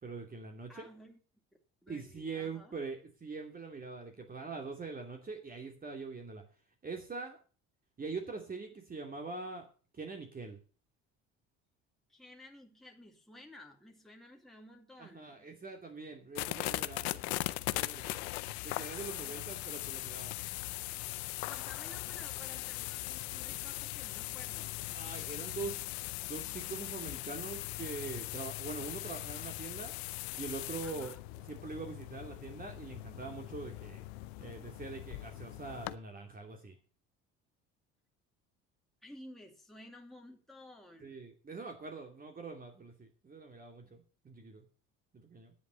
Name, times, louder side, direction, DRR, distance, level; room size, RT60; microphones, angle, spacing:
voice 1, 0.0-0.9 1.9-6.4 6.8-7.4 8.0-9.6 9.9-10.6 15.0-17.4 17.7-18.2 18.6-20.3 24.9-25.9 26.3-29.9 30.4-31.1 31.5-34.0 34.4-36.7 41.0-44.6 45.1-45.5, right 4 dB, 25° right, 3 dB, 2.7 m, -43 dB
voice 2, 0.7-1.2 1.8-2.8 12.1-15.5 21.5-24.8 30.8-31.2 39.0-41.2, left 1 dB, ahead, 1 dB, 2.3 m, -54 dB
sound 1, 16.3-36.0, left 20 dB, 90° left, 0.7 m, -40 dB
10.0 x 8.0 x 8.2 m, 0.39 s
supercardioid pair, 90°, 31 cm